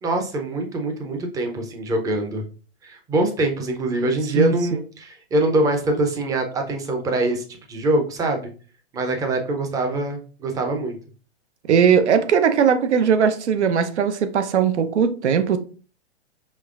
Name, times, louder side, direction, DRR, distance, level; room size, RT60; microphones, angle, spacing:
voice 1, 0.0-2.4 2.8-8.5 8.9-11.0, right 2 dB, 10° right, 0.5 m, -24 dB
voice 2, 4.3-4.8 11.7-15.6, right 7 dB, 85° right, 0.7 m, -19 dB
5.3 x 3.1 x 2.4 m
hypercardioid pair, 135°, 33 cm